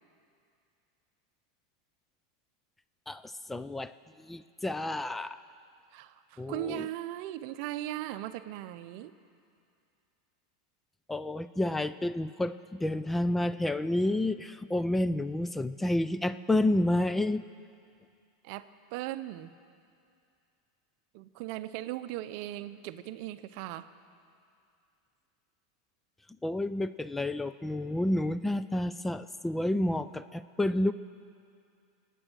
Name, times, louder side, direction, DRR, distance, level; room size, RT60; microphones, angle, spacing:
voice 1, 3.1-3.9 4.2-5.4 6.4-6.9 11.1-17.4 26.4-30.9, left 1 dB, 10° left, 13 dB, 0.4 m, -30 dB
voice 2, 5.9-9.1 18.4-19.5 21.1-23.9, right 14 dB, 55° right, 13 dB, 0.6 m, -38 dB
23.5 x 9.1 x 6.2 m, 2.4 s
hypercardioid pair, 120°, 2 cm